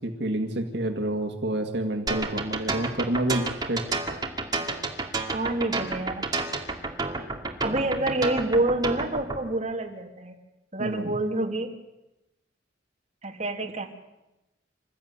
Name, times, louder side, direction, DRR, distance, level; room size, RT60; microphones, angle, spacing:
voice 1, 0.0-3.8 7.7-8.1 10.8-11.2, right 1 dB, 70° right, 4 dB, 2.1 m, -29 dB
sound 1, 2.1-9.4, right 3 dB, 20° right, 2.5 m, -30 dB
voice 2, 5.3-6.3 7.6-10.4 10.7-11.7 13.2-13.9, right 2 dB, 40° right, 1 dB, 2.7 m, -27 dB
27.5 x 14.5 x 9.7 m, 0.96 s
head